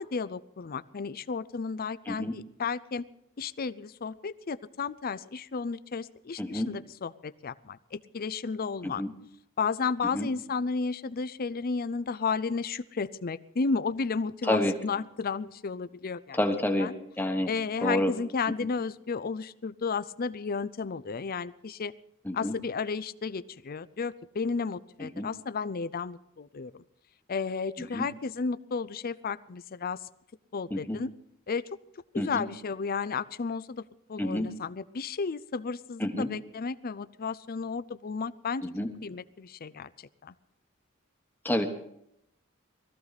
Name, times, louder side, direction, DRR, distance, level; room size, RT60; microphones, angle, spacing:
voice 1, 0.0-3.0 3.4-9.0 9.6-16.4 16.8-16.9 17.5-21.9 22.3-26.8 27.3-30.0 30.5-31.1 31.5-31.7 32.1-33.8 34.1-38.7 39.0-40.3, left 5 dB, 45° left, 16 dB, 0.5 m, -33 dB
voice 2, 6.4-6.7 8.8-9.1 10.1-10.3 14.5-14.7 16.3-17.5 17.8-18.1 22.2-22.5 25.0-25.3 27.8-28.1 30.7-31.0 32.1-32.4 34.2-34.5 36.0-36.3 38.6-38.9 41.4-41.6, left 1 dB, 10° left, 5 dB, 1.2 m, -29 dB
21.0 x 14.5 x 4.1 m, 0.76 s
head